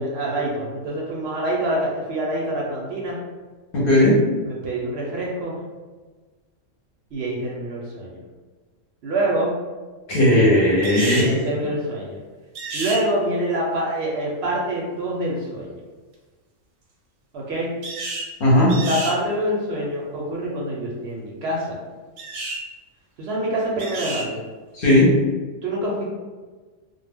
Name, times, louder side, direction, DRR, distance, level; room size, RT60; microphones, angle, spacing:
voice 1, 0.0-3.2 4.4-5.6 7.1-8.2 9.0-9.5 11.1-12.2 12.7-15.7 17.3-17.7 18.8-21.8 23.2-24.4 25.6-26.1, right 1 dB, 65° right, -3 dB, 0.7 m, -26 dB
voice 2, 3.7-4.1 10.1-11.3 18.4-18.7 24.7-25.1, left 1 dB, 55° left, -6 dB, 0.8 m, -16 dB
sound 1, 10.8-11.3 12.6-13.0 17.8-18.3 18.7-19.2 22.2-22.6 23.8-24.3, right 3 dB, 90° right, 1.0 m, -30 dB
2.1 x 2.0 x 3.4 m, 1.3 s
omnidirectional pair, 1.3 m